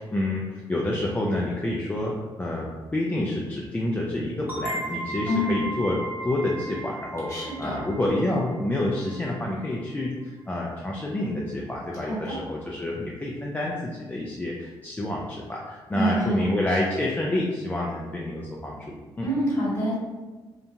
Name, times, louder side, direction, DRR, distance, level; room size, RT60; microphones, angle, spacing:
voice 1, 0.0-6.0 6.2-19.3, left 1 dB, 20° left, -3 dB, 0.4 m, -28 dB
sound 1, 4.5-9.9, right 1 dB, 20° right, 0.7 m, -36 dB
voice 2, 5.3-5.6 7.3-7.8 12.0-12.4 15.9-16.4 19.2-19.9, equal, 35° left, -6 dB, 1.3 m, -26 dB
2.8 x 2.2 x 2.6 m, 1.2 s
cardioid pair, 75°, 9 cm